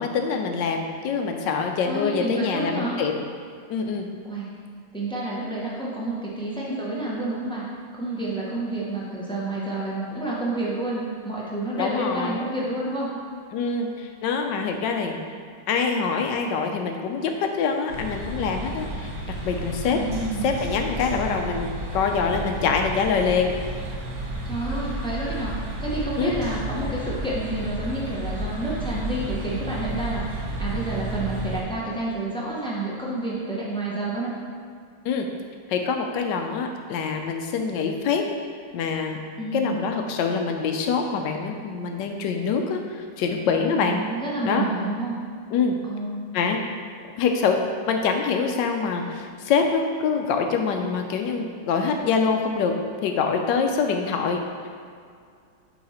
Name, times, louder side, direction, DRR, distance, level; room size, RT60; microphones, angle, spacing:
voice 1, 0.0-3.1 3.7-4.1 11.8-12.4 13.5-15.2 15.7-20.0 20.4-23.5 26.2-26.3 35.0-35.3 35.7-38.2 38.7-39.2 39.5-44.0 44.4-44.6 45.5-45.7 46.3-46.6 47.1-47.6 47.9-52.7 53.0-54.4, left 5 dB, 75° left, 4 dB, 1.2 m, -25 dB
voice 2, 1.8-3.0 4.2-4.5 4.9-7.7 8.0-13.1 19.9-20.5 24.4-25.5 25.8-34.3 39.4-39.9 43.8-45.2 45.8-46.2, right 2 dB, 5° left, -6 dB, 0.5 m, -29 dB
sound 1, 17.9-31.6, right 1 dB, 60° right, 1.3 m, -32 dB
7.4 x 3.2 x 4.2 m, 2.3 s
omnidirectional pair, 2.0 m